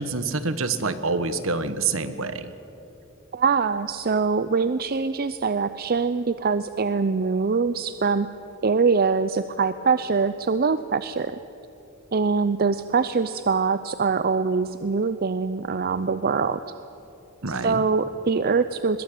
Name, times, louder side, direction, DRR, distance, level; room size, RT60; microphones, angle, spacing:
voice 1, 0.0-2.5 17.4-17.9, right 4 dB, 65° right, 11 dB, 1.4 m, -27 dB
voice 2, 3.3-8.3 8.6-11.4 12.1-16.6 17.6-19.0, right 5 dB, 45° right, 12 dB, 0.6 m, -23 dB
22.0 x 21.5 x 8.9 m, 2.9 s
head